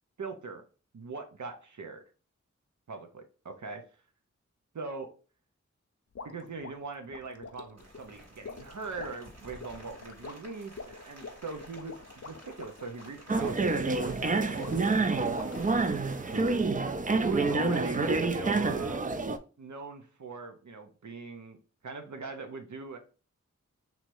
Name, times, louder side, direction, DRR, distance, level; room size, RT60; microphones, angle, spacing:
voice 1, 0.2-0.6 0.9-2.0 2.9-3.8 4.7-5.1 6.2-15.5 16.3-16.7 17.2-19.1 19.6-21.6 21.8-23.0, right 4 dB, 75° right, 5 dB, 0.7 m, -41 dB
sound 1, 6.2-16.1, left 4 dB, 55° left, 0.5 m, -47 dB
Rain, 7.8-16.4, right 1 dB, 60° right, 1.6 m, -53 dB
sound 2, 13.3-19.4, right 3 dB, 30° right, 0.4 m, -28 dB
3.1 x 2.8 x 4.5 m, 0.36 s
wide cardioid pair, 45°, 30 cm